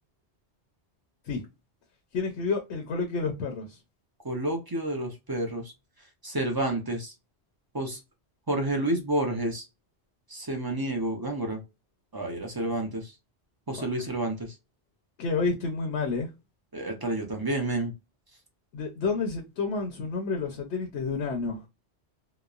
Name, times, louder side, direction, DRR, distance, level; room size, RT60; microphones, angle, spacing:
voice 1, 2.1-3.8 13.7-13.8 15.2-16.3 18.7-21.6, left 4 dB, 75° left, 0.9 m, -30 dB
voice 2, 4.2-5.7 6.2-7.1 7.7-8.0 8.5-9.6 10.3-11.6 12.1-13.1 13.7-14.5 16.7-17.9, right 1 dB, 25° right, 0.5 m, -29 dB
2.9 x 2.0 x 2.3 m
omnidirectional pair, 1.2 m